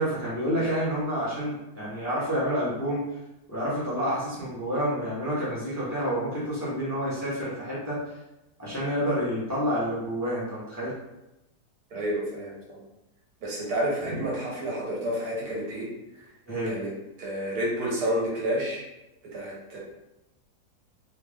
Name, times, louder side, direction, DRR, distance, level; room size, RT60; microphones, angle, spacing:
voice 1, 0.0-3.0 3.5-8.0 8.6-10.9 14.1-14.2 16.5-16.7, equal, 15° left, -8 dB, 0.5 m, -29 dB
voice 2, 11.9-12.8 13.4-15.9 16.6-16.9 17.2-18.8 19.3-19.8, right 1 dB, 85° right, -4 dB, 1.6 m, -30 dB
3.3 x 2.4 x 3.4 m, 0.96 s
omnidirectional pair, 1.7 m